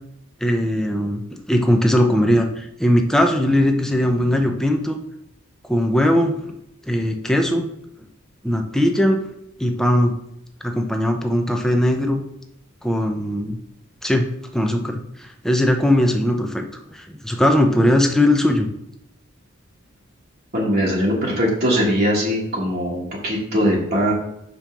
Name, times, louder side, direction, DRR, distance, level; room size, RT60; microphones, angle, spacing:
voice 1, 0.4-5.0 5.7-6.5 6.9-7.7 8.4-9.2 9.6-10.1 10.6-12.2 12.8-13.6 14.0-14.3 14.5-16.6 16.9-18.7, left 1 dB, ahead, 3 dB, 0.7 m, -19 dB
voice 2, 20.5-24.1, equal, 45° right, -5 dB, 1.4 m, -21 dB
5.3 x 4.3 x 6.1 m, 0.77 s
head